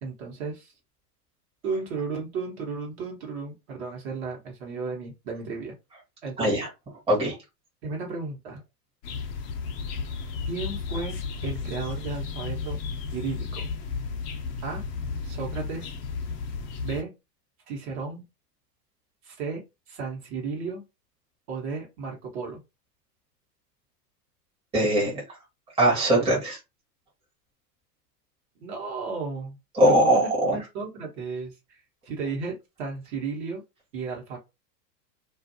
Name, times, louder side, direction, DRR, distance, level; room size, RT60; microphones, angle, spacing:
voice 1, 0.0-0.7 1.6-5.8 6.2-6.7 7.8-8.6 10.5-11.2 11.4-12.8 13.1-13.7 14.6-14.8 15.2-15.9 16.8-17.1 17.7-18.2 19.2-20.8 21.5-22.6 28.6-29.6 29.9-31.8 32.0-33.6 33.9-34.4, right 4 dB, 40° right, 1.1 m, -34 dB
voice 2, 6.4-6.7 7.1-7.4 24.7-25.2 25.8-26.6 29.7-30.6, right 1 dB, 10° right, 1.0 m, -21 dB
sound 1, 9.0-17.0, left 5 dB, 35° left, 0.6 m, -33 dB
2.5 x 2.5 x 2.6 m
hypercardioid pair, 125°, 50 cm